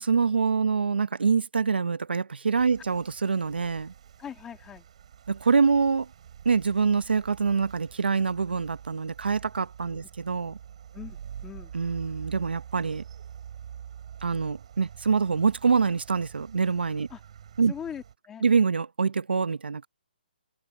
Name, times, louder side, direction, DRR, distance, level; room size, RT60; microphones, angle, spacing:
voice 1, 0.0-3.9 5.3-6.1 6.4-10.6 11.7-13.0 14.2-17.1 17.6-17.7 18.4-19.9, right 5 dB, 90° right, 1.2 m, -25 dB
sound 1, 2.5-18.1, right 9 dB, 40° right, 7.2 m, -46 dB
voice 2, 4.2-4.9 10.0-10.1 10.9-11.7 17.1-17.2 17.7-18.4, left 8 dB, 10° left, 2.3 m, -41 dB
open air
hypercardioid pair, 170°, 5 cm